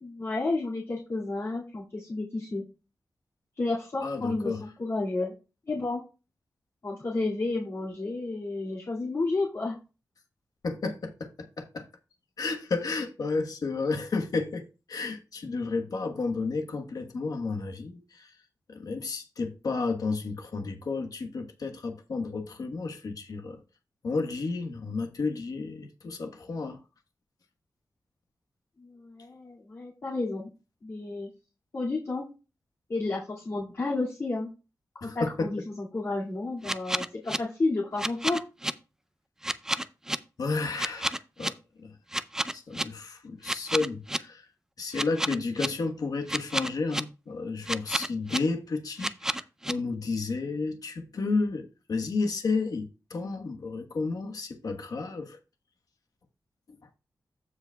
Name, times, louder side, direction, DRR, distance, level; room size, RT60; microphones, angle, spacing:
voice 1, 0.0-2.6 3.6-5.3 5.7-6.0 6.8-9.8 28.8-30.5 30.8-31.3 31.7-32.2 32.9-34.5 35.0-38.4, left 2 dB, 50° left, 2.3 m, -31 dB
voice 2, 4.0-4.6 10.6-11.8 12.4-18.3 18.7-23.6 24.0-26.8 35.0-35.5 40.4-42.0 42.5-44.5 44.8-55.4, left 3 dB, 70° left, 1.2 m, -32 dB
sound 1, 36.6-37.4 38.0-38.7 39.4-40.2 40.8-41.5 42.1-42.8 43.4-44.2 44.9-45.7 46.3-47.0 47.6-48.4 49.0-49.7, right 1 dB, 10° right, 0.5 m, -29 dB
15.0 x 5.0 x 2.3 m
wide cardioid pair, 85°, 7 cm